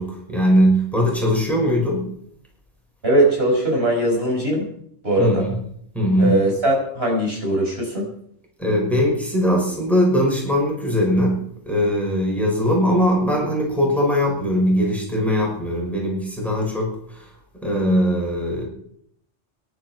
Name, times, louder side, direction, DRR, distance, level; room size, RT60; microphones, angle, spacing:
voice 1, 0.0-2.1 5.2-5.6 5.9-6.4 8.6-17.3 17.6-18.6, equal, ahead, -2 dB, 6.1 m, -20 dB
voice 2, 3.0-4.7 5.0-5.4 6.2-8.1, right 1 dB, 50° right, -2 dB, 6.2 m, -20 dB
23.5 x 11.5 x 4.7 m, 0.68 s
omnidirectional pair, 1.3 m